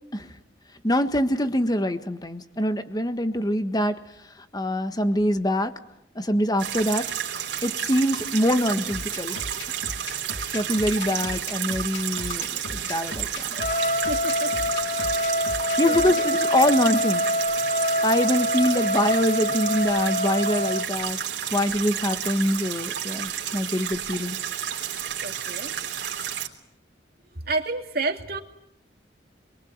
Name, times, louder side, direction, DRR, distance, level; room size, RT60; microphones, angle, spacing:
voice 1, 0.8-3.9 4.5-5.7 6.1-7.1 7.6-9.5 10.5-13.5 15.8-17.2 18.0-21.2 21.5-24.4, left 1 dB, 20° left, 9 dB, 1.6 m, -24 dB
sound 1, 6.6-26.5, right 9 dB, 70° right, 3.4 m, -31 dB
sound 2, 8.9-16.2, left 2 dB, 85° left, 2.7 m, -37 dB
Trumpet, 13.5-20.9, left 1 dB, 50° left, 1.5 m, -25 dB
voice 2, 14.1-14.5 15.8-16.0 22.1-22.2 25.2-25.7 27.5-28.4, right 3 dB, 55° right, 4 dB, 2.7 m, -29 dB
27.0 x 23.0 x 8.9 m, 0.83 s
head